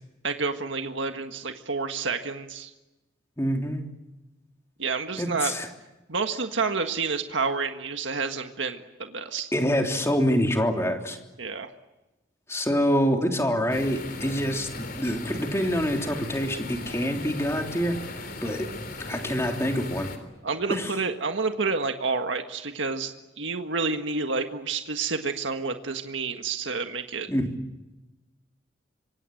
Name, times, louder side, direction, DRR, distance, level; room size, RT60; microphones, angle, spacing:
voice 1, 0.2-2.7 4.8-5.5 6.1-9.5 11.4-11.7 20.4-27.3, right 4 dB, 80° right, 6 dB, 1.7 m, -29 dB
voice 2, 3.4-3.9 5.2-5.7 9.5-11.2 12.5-18.7 19.1-20.1 20.7-21.0 27.3-27.5, equal, 15° left, 3 dB, 3.2 m, -26 dB
sound 1, 13.7-20.2, left 2 dB, 50° left, 3.8 m, -38 dB
26.0 x 25.0 x 7.8 m, 1.0 s
head